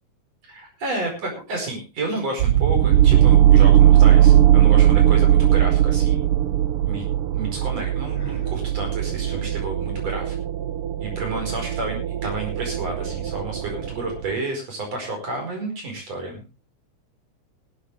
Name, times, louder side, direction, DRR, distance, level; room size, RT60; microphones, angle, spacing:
voice 1, 0.5-6.2 6.9-7.1 7.3-10.3 11.0-16.4, right 2 dB, 55° right, 2 dB, 6.1 m, -30 dB
sound 1, 2.4-14.3, right 11 dB, 70° right, 1.4 m, -18 dB
Sigh, 8.1-8.6, left 1 dB, 15° left, 0.7 m, -41 dB
19.0 x 12.0 x 3.5 m, 0.29 s
omnidirectional pair, 3.6 m